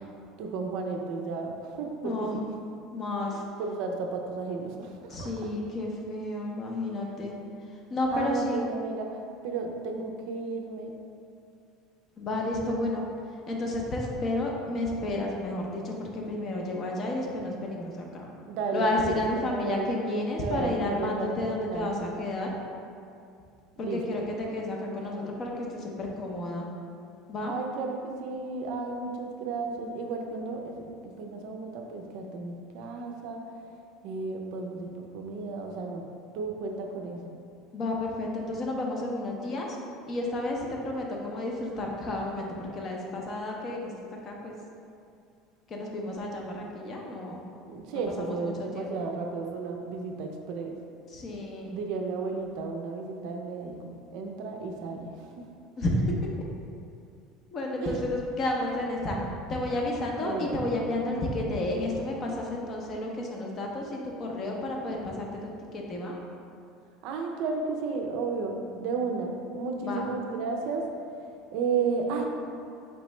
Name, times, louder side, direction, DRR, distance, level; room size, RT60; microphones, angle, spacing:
voice 1, 0.4-2.3 3.3-5.3 8.1-10.9 18.5-19.9 20.3-21.9 23.8-24.2 27.4-30.8 31.0-33.4 34.0-36.1 36.3-37.3 47.7-50.8 51.7-55.5 57.8-58.0 60.2-60.5 67.0-70.9 71.5-72.2, right 4 dB, 65° right, 2 dB, 0.4 m, -33 dB
voice 2, 2.0-2.4 2.9-3.4 5.1-7.3 7.9-8.6 12.2-13.1 13.5-18.3 18.7-22.5 23.8-26.7 27.3-27.5 37.7-39.8 40.1-43.9 44.2-44.5 45.7-47.4 47.9-49.1 51.1-51.7 55.8-56.1 57.5-66.1 69.8-70.1, left 1 dB, 30° left, -1 dB, 0.6 m, -31 dB
4.4 x 3.0 x 3.1 m, 2.5 s
cardioid pair, 155°, 0 cm